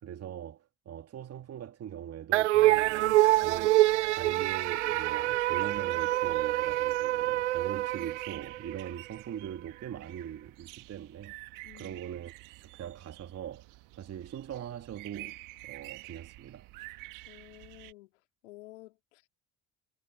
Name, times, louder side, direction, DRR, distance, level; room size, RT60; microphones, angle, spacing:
voice 1, 0.0-3.8 4.1-11.4 11.7-12.3 12.6-13.7 14.0-15.4 15.6-16.7, right 10 dB, 45° right, 2.3 m, -41 dB
sound 1, 2.3-8.9, right 16 dB, 90° right, 0.5 m, -26 dB
sound 2, 2.7-17.9, right 21 dB, 65° right, 1.6 m, -49 dB
voice 2, 11.6-12.0 17.3-18.1 18.4-19.3, left 19 dB, 80° left, 2.2 m, -52 dB
hypercardioid pair, 65°, 34 cm